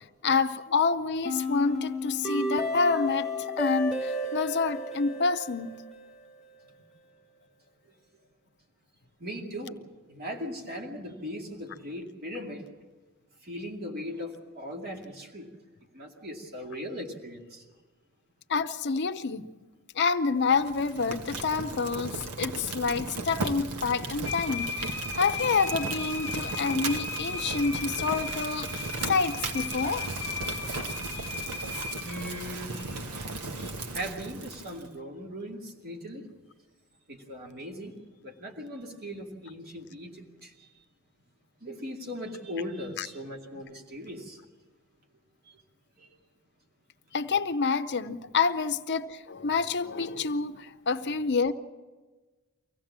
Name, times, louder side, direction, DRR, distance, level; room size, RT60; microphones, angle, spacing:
voice 1, 0.2-5.8 18.5-19.5 20.0-30.0 43.0-43.1 47.1-51.5, left 4 dB, 50° left, 11 dB, 0.7 m, -28 dB
sound 1, 1.2-6.3, left 2 dB, ahead, 1.9 m, -33 dB
voice 2, 9.2-9.8 10.1-12.7 13.4-15.5 15.9-17.7 31.1-31.4 32.0-32.8 33.6-36.2 37.1-38.0 38.2-40.7 41.6-44.4 45.5-45.6 46.0-46.1, equal, 45° right, 0 dB, 2.5 m, -39 dB
Fire, 20.5-34.9, right 3 dB, 90° right, 1.3 m, -36 dB
sound 2, 24.2-33.9, left 4 dB, 15° right, 6.2 m, -37 dB
24.5 x 16.5 x 7.4 m, 1.3 s
head